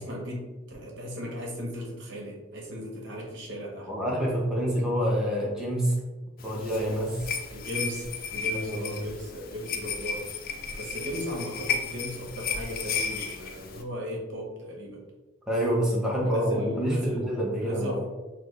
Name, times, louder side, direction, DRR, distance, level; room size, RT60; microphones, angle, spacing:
voice 1, 0.0-3.9 7.5-8.1 8.3-10.3 10.8-15.0 16.2-17.3 17.6-18.1, equal, 60° right, -2 dB, 1.0 m, -36 dB
voice 2, 3.9-5.9 6.4-7.3 8.5-8.8 15.5-18.0, equal, 5° right, -4 dB, 0.7 m, -27 dB
sound 1, 6.4-13.8, left 5 dB, 45° left, 0.5 m, -34 dB
5.9 x 2.1 x 3.2 m, 1.2 s
head